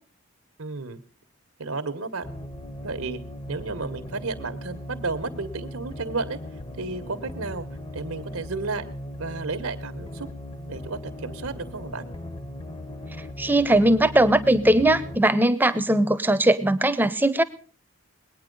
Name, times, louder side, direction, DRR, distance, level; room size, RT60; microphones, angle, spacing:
voice 1, 0.6-1.0 1.6-2.3 2.8-3.2 3.5-6.4 6.8-7.7 7.9-8.8 9.1-10.3 10.6-12.1, right 3 dB, 90° right, 8 dB, 1.2 m, -32 dB
sound 1, 2.2-15.2, left 1 dB, 25° left, 0.7 m, -38 dB
voice 2, 13.4-17.4, right 1 dB, 10° right, 13 dB, 0.6 m, -20 dB
21.0 x 9.2 x 5.3 m, 0.40 s
head